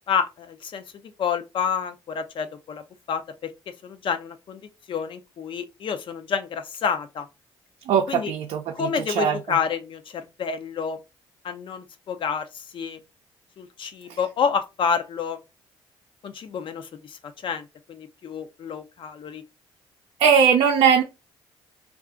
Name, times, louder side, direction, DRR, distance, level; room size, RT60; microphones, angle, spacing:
voice 1, 0.1-0.8 1.2-4.6 4.9-7.3 8.1-8.3 8.7-11.0 11.4-13.0 13.6-15.4 16.2-19.4, left 6 dB, 55° left, 0.5 m, -29 dB
voice 2, 7.9-8.9 9.2-9.4 20.2-21.0, right 7 dB, 75° right, 0.5 m, -19 dB
2.4 x 2.3 x 3.7 m
supercardioid pair, 70°, 10 cm